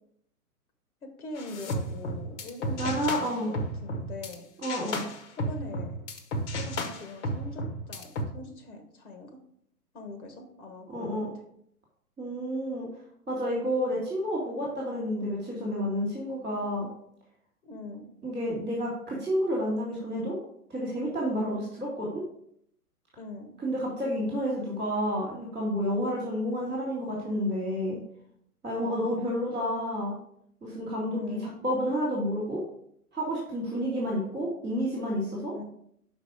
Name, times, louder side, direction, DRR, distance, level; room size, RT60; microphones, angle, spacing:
voice 1, 1.0-3.5 3.8-4.4 5.3-6.0 6.5-9.4 9.9-11.2 17.6-18.1 23.2-23.5 28.8-29.2 31.1-31.6 35.5-35.6, left 2 dB, 65° left, 5 dB, 1.5 m, -42 dB
sound 1, 1.4-4.3 4.6-8.2, equal, 50° left, 1.2 m, -33 dB
voice 2, 2.8-3.5 4.6-5.0 10.9-11.3 12.2-12.9 13.3-16.9 18.2-20.3 20.7-22.2 23.6-28.0 28.6-30.2 30.6-32.6 33.1-35.5, equal, ahead, -27 dB, 0.3 m, -30 dB
5.5 x 5.1 x 4.9 m, 0.70 s
figure-of-eight pair, 120°, 46 cm